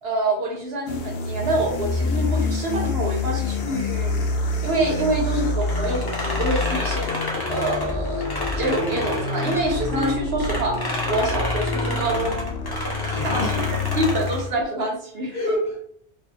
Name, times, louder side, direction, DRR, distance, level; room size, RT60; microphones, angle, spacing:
voice 1, 0.0-4.2 4.6-7.1 7.5-8.3 8.5-12.5 13.2-13.6 13.9-15.4, right 1 dB, 70° right, 1 dB, 1.0 m, -26 dB
sound 1, 0.9-14.5, left 3 dB, 80° left, 0.9 m, -27 dB
sound 2, 5.6-10.1 10.4-14.5, left 1 dB, 25° left, 0.8 m, -30 dB
voice 2, 13.0-13.7 14.8-14.9 15.3-15.8, equal, 40° left, -4 dB, 1.3 m, -28 dB
4.9 x 2.4 x 2.7 m, 0.62 s
omnidirectional pair, 1.1 m